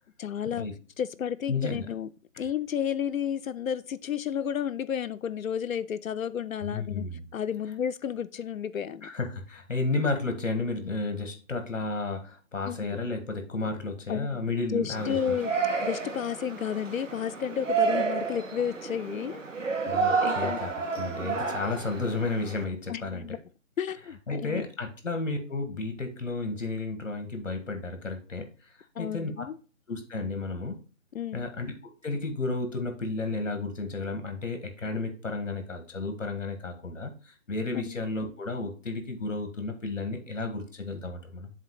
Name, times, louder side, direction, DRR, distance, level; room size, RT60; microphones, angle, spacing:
voice 1, 0.2-0.7 1.0-2.1 2.4-7.1 7.3-9.1 12.7-13.0 14.1-14.4 14.7-15.5 15.8-19.4 20.2-20.6 22.9-23.4 23.8-24.6 29.0-29.6 31.1-31.5 37.9-38.0, left 8 dB, 85° left, 0.5 m, -32 dB
voice 2, 1.5-1.9 6.6-7.2 9.0-15.2 19.9-20.7 21.0-23.3 24.3-28.5 29.0-29.4 29.9-30.8 31.3-31.7 32.0-41.5, left 3 dB, 65° left, 1.7 m, -32 dB
Yell, 14.9-22.6, right 5 dB, 65° right, 1.7 m, -30 dB
7.3 x 2.8 x 5.7 m
figure-of-eight pair, 170°, 40 cm